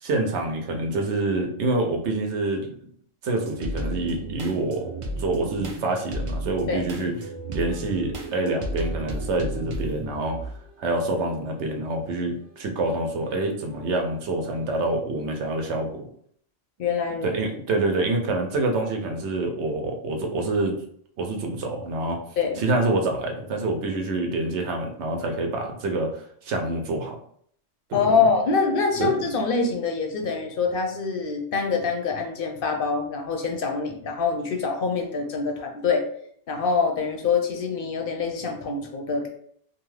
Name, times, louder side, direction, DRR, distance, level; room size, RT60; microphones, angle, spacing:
voice 1, 0.0-2.7 3.2-7.1 7.5-10.5 10.8-16.1 17.2-20.8 21.2-22.2 22.6-27.2 27.9-28.3 29.0-29.2, right 2 dB, 90° right, 3 dB, 0.9 m, -26 dB
sound 1, 3.3-10.7 11.3-12.2 12.8-12.9 13.2-14.2, right 1 dB, 50° right, 0.3 m, -33 dB
voice 2, 16.8-17.3 22.4-22.6 27.9-36.1 36.5-39.3, left 5 dB, 65° left, 3 dB, 0.7 m, -25 dB
2.7 x 2.3 x 3.1 m, 0.63 s
omnidirectional pair, 1.1 m